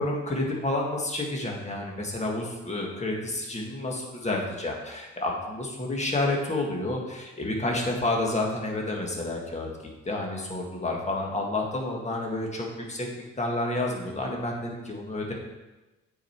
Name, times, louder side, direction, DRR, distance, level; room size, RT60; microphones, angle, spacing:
voice 1, 0.0-9.7 10.1-13.1 13.4-15.3, left 2 dB, 20° left, -1 dB, 1.8 m, -30 dB
8.7 x 5.1 x 4.6 m, 1.1 s
cardioid pair, 90°, 30 cm